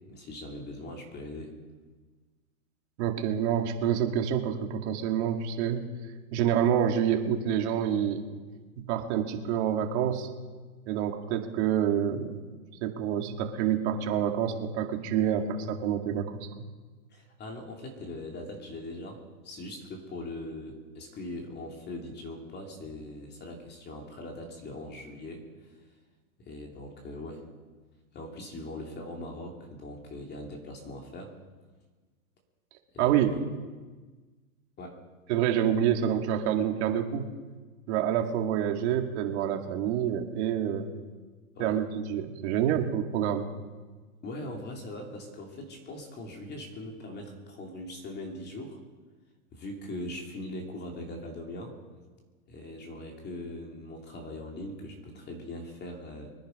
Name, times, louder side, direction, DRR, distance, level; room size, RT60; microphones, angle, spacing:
voice 1, 0.1-1.6 17.1-25.8 26.4-27.5 28.1-31.4 32.9-33.4 34.8-35.0 41.5-41.8 44.2-48.8 49.5-51.8 52.5-56.3, left 1 dB, 25° left, 1 dB, 2.8 m, -41 dB
voice 2, 3.0-5.8 6.3-8.2 8.8-10.3 10.9-12.4 12.8-16.6 33.0-33.3 35.3-37.3 37.9-40.9 41.6-41.8 42.1-43.5, right 9 dB, 50° right, 4 dB, 2.1 m, -27 dB
23.5 x 10.0 x 5.4 m, 1.3 s
hypercardioid pair, 130°, 44 cm